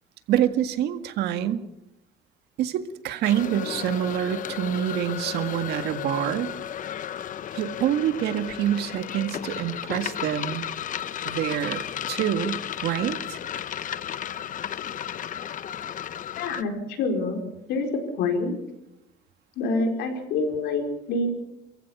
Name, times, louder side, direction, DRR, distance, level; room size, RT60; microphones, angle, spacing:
voice 1, 0.3-1.6 2.6-6.5 7.5-10.7 11.3-13.4, right 10 dB, 80° right, 9 dB, 1.9 m, -26 dB
sound 1, 3.2-16.6, left 10 dB, 50° left, 1.0 m, -34 dB
voice 2, 16.3-17.4 17.7-18.6 19.6-21.3, left 3 dB, 85° left, 4 dB, 4.9 m, -26 dB
28.0 x 15.5 x 7.3 m, 0.87 s
cardioid pair, 110°, 17 cm